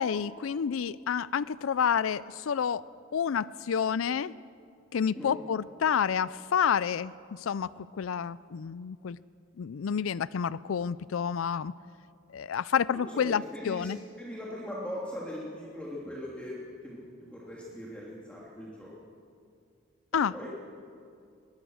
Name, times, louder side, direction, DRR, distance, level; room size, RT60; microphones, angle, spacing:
voice 1, 0.0-2.8 3.1-4.3 4.9-9.2 9.6-11.7 12.3-14.0 20.1-20.5, left 7 dB, 80° left, 18 dB, 0.4 m, -29 dB
voice 2, 12.9-13.9 14.2-16.6 16.8-18.9 20.3-20.5, left 1 dB, 5° left, -6 dB, 2.7 m, -40 dB
21.5 x 21.0 x 6.4 m, 2.4 s
head